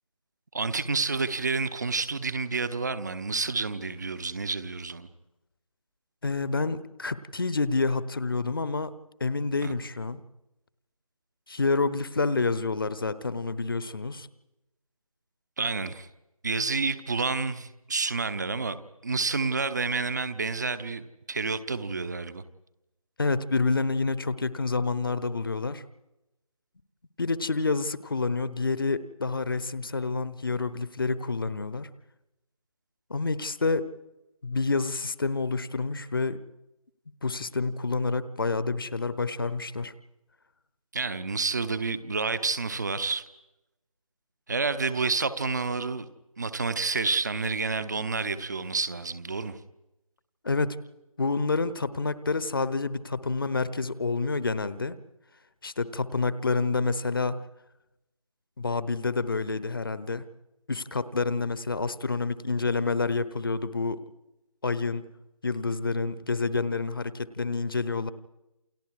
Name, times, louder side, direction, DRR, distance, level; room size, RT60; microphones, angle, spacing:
voice 1, 0.5-5.1 9.6-9.7 15.6-16.1 16.4-18.8 19.0-22.4 40.9-43.2 44.5-46.0 46.4-49.6, right 4 dB, 30° right, 13 dB, 1.0 m, -29 dB
voice 2, 6.2-8.9 9.2-10.2 11.5-14.3 23.2-25.8 27.2-31.9 33.1-33.9 34.4-36.4 37.2-39.9 50.4-50.8 51.2-55.0 55.6-57.4 58.6-60.2 60.7-64.0 64.6-65.1 65.4-68.1, left 3 dB, 40° left, 16 dB, 1.0 m, -28 dB
29.0 x 29.0 x 4.8 m, 0.93 s
figure-of-eight pair, 160°, 18 cm